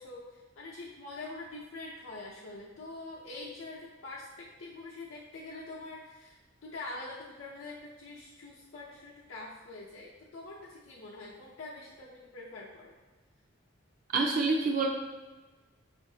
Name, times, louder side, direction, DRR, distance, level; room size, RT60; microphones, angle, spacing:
voice 1, 0.0-13.0, left 2 dB, 90° left, -5 dB, 0.6 m, -45 dB
voice 2, 14.1-14.9, right 3 dB, 45° right, 0 dB, 0.4 m, -27 dB
6.1 x 2.5 x 2.7 m, 1.2 s
head